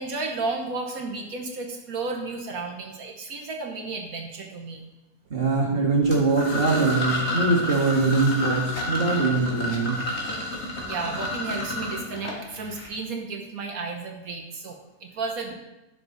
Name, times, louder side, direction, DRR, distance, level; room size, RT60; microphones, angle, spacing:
voice 1, 0.0-4.9 10.8-15.5, right 3 dB, 65° right, 1 dB, 1.5 m, -33 dB
voice 2, 5.3-10.0, right 3 dB, 35° right, -2 dB, 1.8 m, -22 dB
sound 1, 6.0-12.9, left 1 dB, 45° left, 1.9 m, -30 dB
10.0 x 7.1 x 4.0 m, 0.98 s
omnidirectional pair, 1.7 m